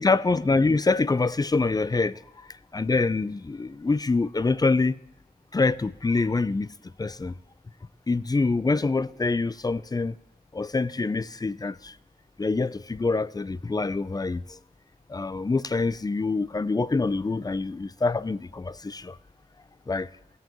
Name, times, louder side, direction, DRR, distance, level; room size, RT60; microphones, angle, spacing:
voice 1, 0.0-2.2 2.7-5.0 5.5-6.7 7.0-7.4 8.1-10.1 10.5-11.9 12.4-14.6 15.1-19.2 19.9-20.1, left 3 dB, 25° left, 0.3 m, -25 dB
21.0 x 7.4 x 3.0 m
wide cardioid pair, 80°, 16 cm